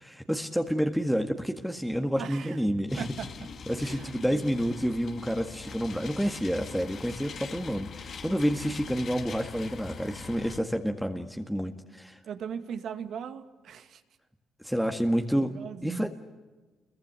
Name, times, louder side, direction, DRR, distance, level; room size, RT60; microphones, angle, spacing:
voice 1, 0.0-3.1 3.7-12.2 14.6-15.6 15.8-16.1, equal, ahead, 5 dB, 1.8 m, -29 dB
voice 2, 2.2-2.6 3.0-3.5 3.8-4.5 12.2-14.0 15.4-16.1, right 7 dB, 70° right, 8 dB, 2.2 m, -39 dB
sound 1, 2.9-10.6, left 5 dB, 55° left, 2.2 m, -43 dB
29.0 x 22.5 x 8.3 m, 1.2 s
cardioid pair, 90°, 0 cm